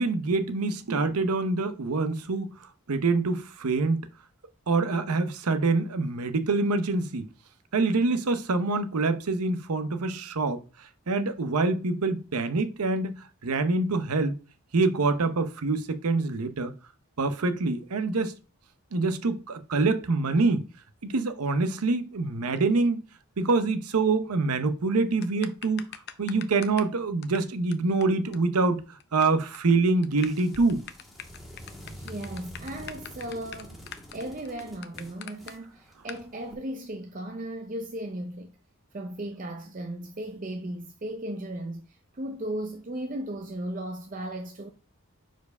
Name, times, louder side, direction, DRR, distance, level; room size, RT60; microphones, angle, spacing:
voice 1, 0.0-4.0 4.7-7.3 7.7-14.4 14.7-16.7 17.2-18.3 18.9-20.6 21.0-23.0 23.4-25.9 26.2-30.8, right 3 dB, 85° right, 0.7 m, -26 dB
sound 1, 25.2-26.9 27.2-27.4 27.7-27.8 28.0-28.1 28.3-28.4 28.6-29.2 29.5-29.7 30.0-35.5 36.1-36.2, left 9 dB, 45° left, 0.5 m, -42 dB
sound 2, 30.1-36.5, equal, ahead, 1.3 m, -47 dB
voice 2, 31.9-33.8 34.1-38.5 38.9-44.7, right 1 dB, 35° right, 0.5 m, -36 dB
4.7 x 4.5 x 5.3 m
head